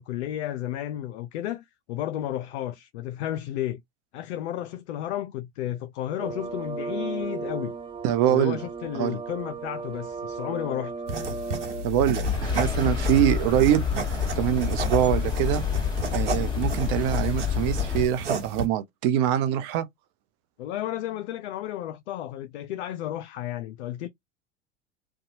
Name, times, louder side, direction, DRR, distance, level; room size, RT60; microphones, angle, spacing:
voice 1, 0.0-3.8 4.1-7.8 8.3-10.9 20.6-24.1, left 12 dB, 65° left, 0.5 m, -32 dB
sound 1, 6.2-11.8, right 4 dB, 15° right, 0.9 m, -35 dB
voice 2, 8.0-8.6 8.9-9.2 11.8-15.6 16.1-19.9, right 11 dB, 45° right, 0.6 m, -24 dB
sound 2, 11.1-18.7, right 2 dB, 75° right, 1.0 m, -33 dB
sound 3, 12.2-18.1, left 7 dB, 10° left, 1.2 m, -28 dB
2.6 x 2.3 x 2.6 m
figure-of-eight pair, 85°, 36 cm